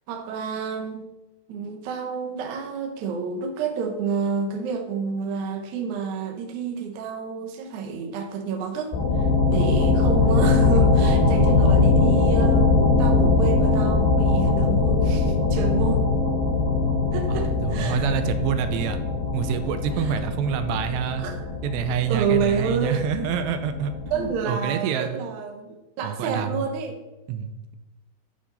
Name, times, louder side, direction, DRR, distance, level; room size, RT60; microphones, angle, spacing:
voice 1, 0.1-1.1 1.5-16.1 17.1-18.1 20.0-20.2 21.2-21.5 22.1-23.0 24.1-27.0, right 5 dB, 65° right, 4 dB, 2.0 m, -29 dB
sound 1, 8.9-24.3, left 3 dB, 85° left, 4.4 m, -21 dB
voice 2, 17.3-19.0 19.3-21.3 21.6-25.2 26.0-26.7 27.3-27.8, right 8 dB, 85° right, 9 dB, 2.8 m, -27 dB
11.5 x 5.9 x 4.1 m, 1.0 s
omnidirectional pair, 4.9 m